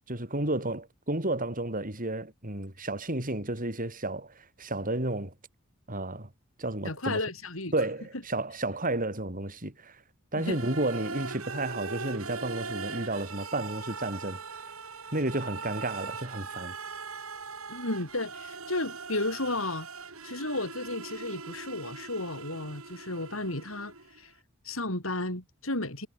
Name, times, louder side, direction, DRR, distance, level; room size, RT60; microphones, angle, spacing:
voice 1, 0.1-5.3 5.9-6.3 6.6-7.2 7.7-10.0 10.3-14.4 15.1-16.7, right 2 dB, 40° right, 6.2 m, -32 dB
voice 2, 6.8-7.7 10.4-10.6 17.7-19.9 20.2-24.3 24.6-26.1, left 2 dB, 70° left, 7.1 m, -33 dB
sound 1, 10.4-24.2, right 4 dB, 85° right, 6.0 m, -40 dB
head